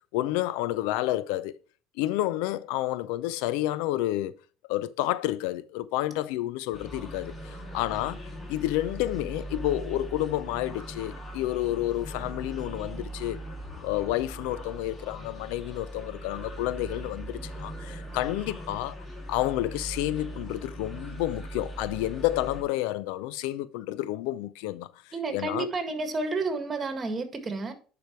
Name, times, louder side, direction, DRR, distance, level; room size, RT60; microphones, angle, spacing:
voice 1, 0.1-1.5 2.0-4.3 4.7-8.2 8.5-13.4 13.8-25.7, left 15 dB, 85° left, 0.4 m, -30 dB
sound 1, 6.7-22.6, right 1 dB, 25° left, 2.5 m, -40 dB
voice 2, 25.1-27.7, right 3 dB, 30° right, 1.8 m, -31 dB
10.5 x 4.8 x 3.1 m
supercardioid pair, 95°, 0 cm